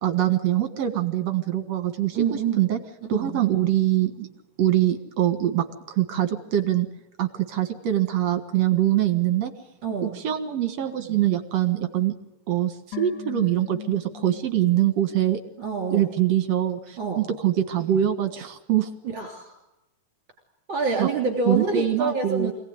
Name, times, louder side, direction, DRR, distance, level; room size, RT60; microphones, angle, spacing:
voice 1, 0.0-2.8 3.1-4.3 4.6-6.9 7.2-9.5 10.0-12.1 12.5-15.4 15.9-18.9 21.0-21.1 21.5-22.5, right 12 dB, 60° right, 8 dB, 2.6 m, -23 dB
voice 2, 2.1-2.7 3.1-3.4 9.8-10.2 15.6-16.1 17.0-17.3 19.1-19.6 20.7-22.5, right 4 dB, 40° right, 2 dB, 3.9 m, -27 dB
sound 1, 12.9-16.2 16.5-16.6, left 13 dB, 70° left, 3.8 m, -41 dB
26.5 x 18.5 x 9.5 m, 0.91 s
omnidirectional pair, 3.6 m